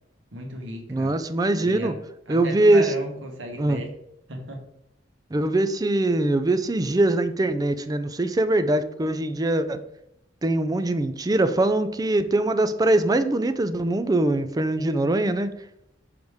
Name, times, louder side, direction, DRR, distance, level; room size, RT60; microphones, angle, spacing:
voice 1, 0.3-1.1 1.6-1.9 2.3-4.0 4.3-4.6, right 1 dB, 80° right, 2 dB, 1.3 m, -35 dB
voice 2, 0.9-2.0 2.3-2.9 3.6-3.8 5.3-9.8 10.4-15.5, right 2 dB, 20° right, 10 dB, 0.4 m, -22 dB
6.1 x 5.1 x 3.5 m, 0.81 s
head